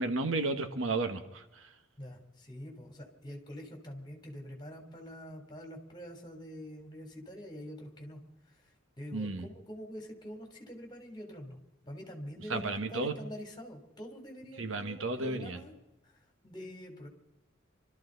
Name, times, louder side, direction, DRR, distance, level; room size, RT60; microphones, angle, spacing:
voice 1, 0.0-1.6 9.1-9.4 12.5-13.1 14.6-15.6, right 3 dB, 75° right, 7 dB, 1.4 m, -33 dB
voice 2, 2.0-8.2 8.5-11.6 11.8-15.7 16.0-17.1, equal, 20° left, 3 dB, 3.2 m, -45 dB
26.5 x 13.5 x 4.0 m, 0.91 s
head